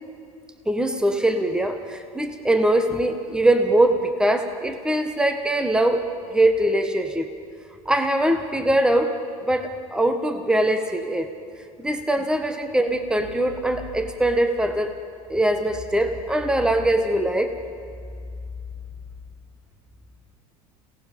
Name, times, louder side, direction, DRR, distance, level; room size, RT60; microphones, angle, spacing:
voice 1, 0.6-6.0 6.3-7.3 7.8-11.3 11.8-14.9 15.3-17.5, right 1 dB, 5° right, 6 dB, 1.5 m, -22 dB
28.5 x 18.0 x 5.4 m, 2.3 s
hypercardioid pair, 85°, 19 cm